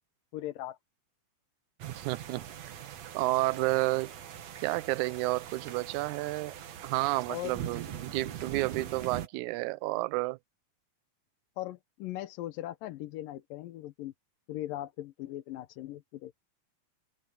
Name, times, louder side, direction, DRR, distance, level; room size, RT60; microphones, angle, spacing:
voice 1, 0.3-0.8 7.3-7.6 11.6-14.1 14.5-16.3, left 14 dB, 85° left, 2.6 m, -39 dB
sound 1, 1.8-9.3, right 9 dB, 60° right, 2.4 m, -42 dB
voice 2, 2.0-2.4 3.1-4.1 4.6-6.6 6.8-10.4, right 20 dB, 75° right, 1.8 m, -31 dB
omnidirectional pair, 3.8 m